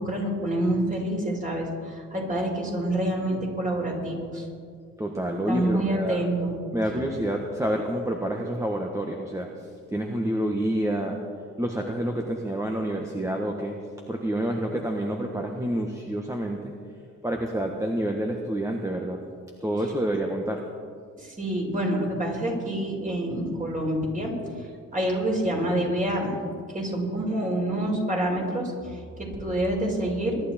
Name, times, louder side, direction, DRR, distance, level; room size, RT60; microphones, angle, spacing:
voice 1, 0.0-4.5 5.5-6.6 21.2-24.3 24.9-26.4 26.7-30.5, right 1 dB, 25° right, -2 dB, 5.2 m, -27 dB
voice 2, 5.0-6.2 6.7-11.2 11.6-13.7 14.1-16.7 17.2-19.2 19.6-20.6, right 1 dB, 10° right, 1 dB, 1.5 m, -28 dB
23.0 x 11.5 x 4.4 m, 2.1 s
cardioid pair, 90°, 30 cm